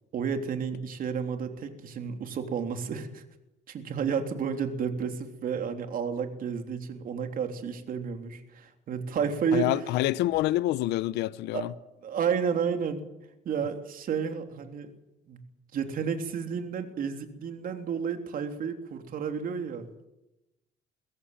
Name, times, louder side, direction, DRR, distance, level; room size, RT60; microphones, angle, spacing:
voice 1, 0.1-3.2 3.7-9.8 11.5-11.7 12.0-13.0 13.4-14.9 15.3-15.4 15.7-20.1, right 6 dB, 55° right, 3.4 m, -31 dB
voice 2, 9.5-11.7, left 15 dB, 85° left, 0.9 m, -27 dB
23.0 x 16.5 x 9.1 m
cardioid pair, 110°, 17 cm